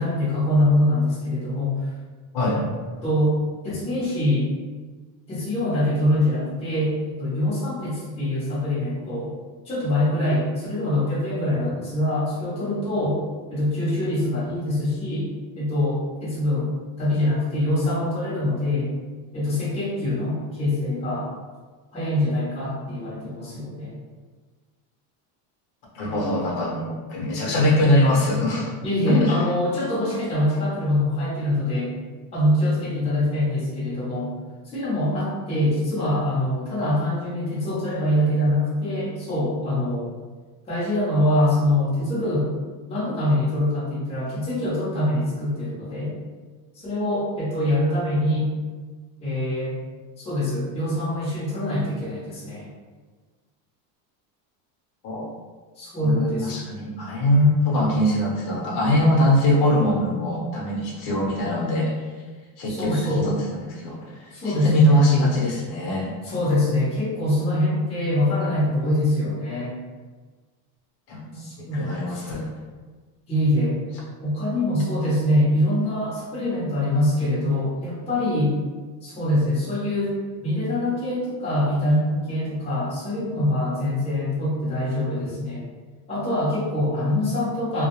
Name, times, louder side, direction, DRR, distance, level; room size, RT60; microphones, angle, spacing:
voice 1, 0.0-1.9 3.0-3.4 3.6-4.5 5.3-9.3 9.6-13.2 13.5-15.3 15.6-18.9 19.3-21.3 21.9-24.0 28.8-31.9 32.3-34.3 34.6-40.1 40.7-42.5 42.9-46.1 46.7-48.5 49.2-49.7 50.2-52.7 55.8-56.5 62.7-63.3 64.3-65.1 66.2-69.8 71.3-72.2 73.3-73.8 74.2-78.5 79.0-85.6 86.1-87.8, left 1 dB, 15° left, -9 dB, 0.6 m, -24 dB
voice 2, 2.3-2.7 25.9-28.7 29.1-29.4 55.0-55.3 56.0-62.1 62.6-66.2 71.1-72.5, left 1 dB, 50° left, -3 dB, 0.8 m, -22 dB
2.2 x 2.2 x 2.9 m, 1.4 s
cardioid pair, 150°, 48 cm